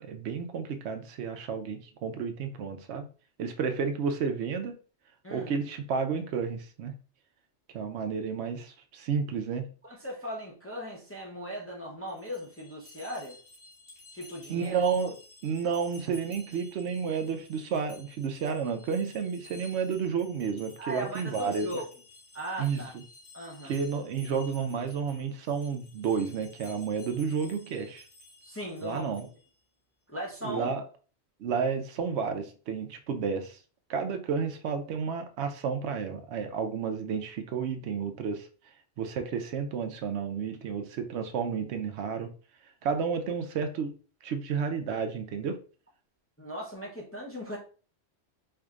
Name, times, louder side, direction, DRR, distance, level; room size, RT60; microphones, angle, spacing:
voice 1, 0.0-3.1 3.4-4.8 5.3-6.9 7.7-9.7 14.5-15.1 15.4-21.8 22.6-22.8 23.6-28.1 28.8-29.3 30.4-30.8 31.4-33.6 33.9-38.5 39.0-42.3 42.8-43.9 44.2-45.6, right 6 dB, 75° right, 0.8 m, -31 dB
voice 2, 9.8-13.4 14.1-14.8 20.8-21.8 22.3-22.9 23.3-23.7 28.4-29.1 30.1-30.7 46.4-47.6, equal, 15° left, 0.6 m, -38 dB
sound 1, 12.1-29.5, left 2 dB, 50° left, 1.3 m, -53 dB
4.6 x 2.5 x 2.4 m
omnidirectional pair, 1.1 m